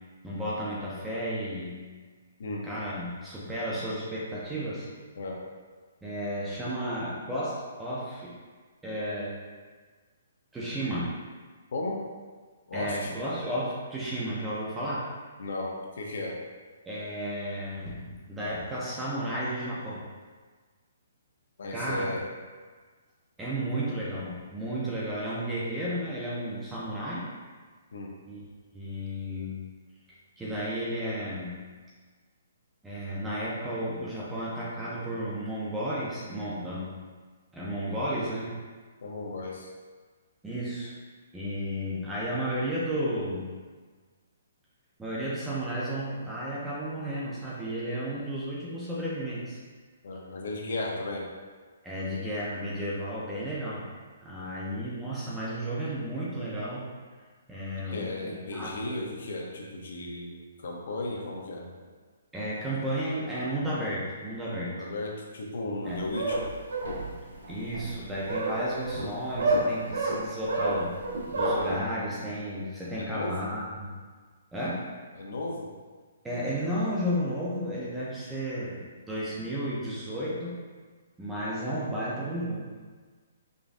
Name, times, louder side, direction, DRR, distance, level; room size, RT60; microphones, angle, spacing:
voice 1, 0.2-1.8 2.6-4.9 6.0-8.3 8.8-9.4 10.5-11.1 12.7-15.1 16.9-20.0 21.7-22.1 23.4-27.2 28.3-28.5 28.7-29.6 30.4-31.6 32.8-36.9 37.5-38.5 40.4-40.9 41.3-43.5 45.0-49.6 51.8-53.9 54.2-56.9 57.5-59.1 62.3-64.7 65.8-66.1 67.5-70.9 71.4-74.0 74.5-74.9 76.2-78.8 79.1-80.6 81.2-82.7, equal, 5° right, -8 dB, 0.4 m, -33 dB
voice 2, 12.7-13.1 15.4-16.4 21.6-22.2 27.9-28.1 39.0-39.7 50.0-51.3 57.8-61.9 64.7-66.5 73.0-73.5 75.1-75.7, left 2 dB, 50° left, -1 dB, 0.6 m, -35 dB
sound 1, 65.8-71.8, right 2 dB, 80° right, 0.8 m, -29 dB
5.0 x 2.4 x 2.5 m, 1.5 s
hypercardioid pair, 180°, 0 cm